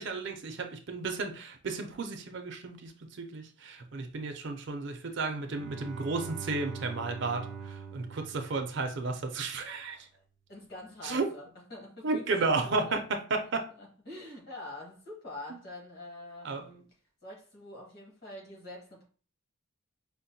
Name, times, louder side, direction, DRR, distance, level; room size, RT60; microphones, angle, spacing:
voice 1, 0.0-2.9 3.2-10.0 11.0-11.3 12.0-13.7 16.4-16.6, right 3 dB, 55° right, 0.5 m, -33 dB
Bowed string instrument, 5.5-9.2, right 6 dB, ahead, 0.5 m, -44 dB
voice 2, 10.5-13.0 13.3-13.4 13.8-16.9 17.2-19.1, left 2 dB, 45° left, 1.3 m, -45 dB
5.0 x 2.1 x 2.7 m
head